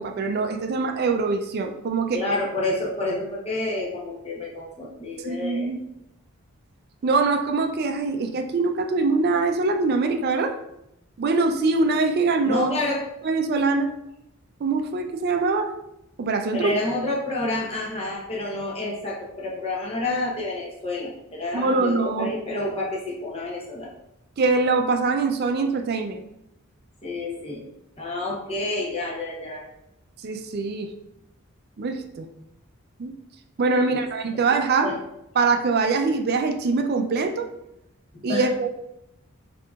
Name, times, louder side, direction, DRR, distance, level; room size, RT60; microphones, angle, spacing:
voice 1, 0.0-2.2 5.2-5.8 7.0-10.6 11.2-12.7 13.2-13.9 14.6-15.7 16.2-16.7 21.5-22.3 24.4-26.2 30.2-30.9 31.8-32.3 33.0-33.2 33.6-34.9 35.4-37.5 38.2-38.7, right 3 dB, 45° right, 6 dB, 0.4 m, -23 dB
voice 2, 2.1-5.7 12.4-13.1 16.5-23.9 27.0-27.6 28.0-29.7 33.8-34.1 34.3-34.4 34.8-35.0 38.3-38.7, left 2 dB, 25° left, -4 dB, 0.9 m, -29 dB
6.0 x 2.8 x 2.4 m, 0.84 s
head